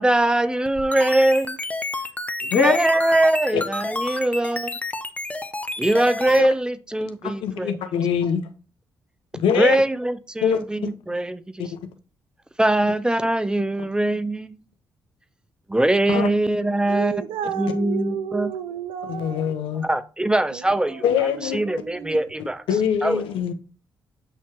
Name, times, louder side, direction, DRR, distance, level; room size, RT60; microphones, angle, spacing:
voice 1, 0.0-1.6 2.5-4.8 5.8-7.8 9.5-11.7 12.6-14.6 15.7-17.2 17.6-18.5 19.8-22.6 23.0-23.2, right 1 dB, 10° right, 0.7 m, -22 dB
sound 1, 0.7-6.4, left 2 dB, 15° left, 0.9 m, -30 dB
voice 2, 7.2-8.5 9.3-9.8 10.4-10.6 11.6-11.8 16.1-16.3 19.1-19.9 21.0-21.6 22.7-23.5, left 8 dB, 85° left, 0.8 m, -23 dB
voice 3, 16.9-19.6 20.5-22.2, right 8 dB, 90° right, 0.7 m, -32 dB
7.8 x 2.8 x 4.6 m
supercardioid pair, 60°, 9 cm